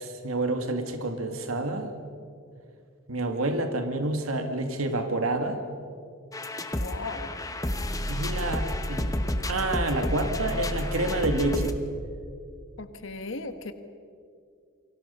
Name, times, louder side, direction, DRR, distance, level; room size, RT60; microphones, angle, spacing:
voice 1, 0.0-1.9 3.1-5.6 8.1-9.2 9.5-11.8, right 2 dB, 85° right, 6 dB, 2.0 m, -28 dB
sound 1, 6.3-11.7, left 1 dB, 15° left, 1.1 m, -30 dB
voice 2, 6.7-7.4 12.8-13.7, left 3 dB, 65° left, 9 dB, 1.4 m, -37 dB
29.0 x 23.5 x 5.6 m, 2.3 s
head